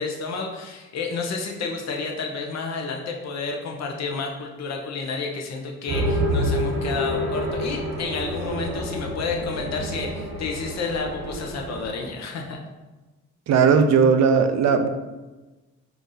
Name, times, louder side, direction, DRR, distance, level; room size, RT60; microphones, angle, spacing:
voice 1, 0.0-12.6, left 4 dB, 60° left, 1 dB, 0.8 m, -30 dB
sound 1, 5.9-11.9, equal, 80° right, 1.0 m, -28 dB
voice 2, 13.5-14.9, right 6 dB, 60° right, 8 dB, 0.5 m, -17 dB
4.6 x 2.7 x 3.8 m, 1.2 s
cardioid pair, 90°, 30 cm